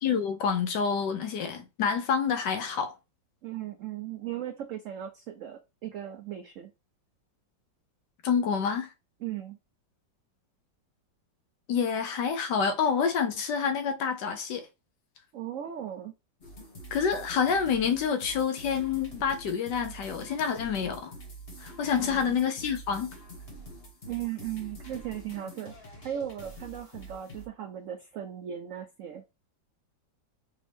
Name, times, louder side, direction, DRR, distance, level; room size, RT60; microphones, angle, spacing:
voice 1, 0.0-2.9 8.2-8.9 11.7-14.7 16.9-21.1 21.6-23.1, left 6 dB, 75° left, 1.3 m, -28 dB
voice 2, 3.4-6.7 9.2-9.6 15.3-16.1 22.0-22.3 24.0-25.7 26.0-29.2, right 11 dB, 80° right, 0.7 m, -37 dB
sound 1, 16.4-27.5, right 1 dB, 40° left, 1.0 m, -46 dB
5.3 x 2.6 x 3.4 m
omnidirectional pair, 2.0 m